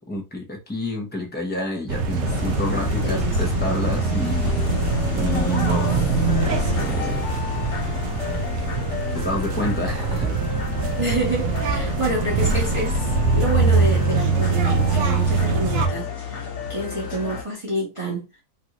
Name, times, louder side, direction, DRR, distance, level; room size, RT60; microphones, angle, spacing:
voice 1, 0.1-4.6 4.8-7.2 9.1-10.3, left 2 dB, 15° left, 0.3 m, -29 dB
sound 1, 1.9-15.9, right 4 dB, 65° right, 0.9 m, -23 dB
sound 2, 2.2-17.4, left 4 dB, 50° left, 1.2 m, -31 dB
voice 2, 3.0-3.4 3.7-4.0 11.0-16.4 16.7-18.3, right 1 dB, 25° right, 1.0 m, -28 dB
3.2 x 2.6 x 2.9 m
omnidirectional pair, 1.7 m